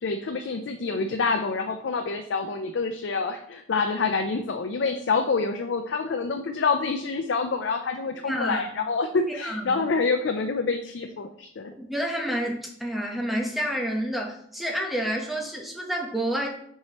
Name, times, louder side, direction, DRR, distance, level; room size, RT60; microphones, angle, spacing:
voice 1, 0.0-11.7, left 4 dB, 70° left, 6 dB, 0.4 m, -27 dB
voice 2, 8.1-8.6 9.4-9.9 11.8-16.5, equal, ahead, -1 dB, 0.9 m, -29 dB
7.3 x 4.7 x 3.0 m, 0.67 s
head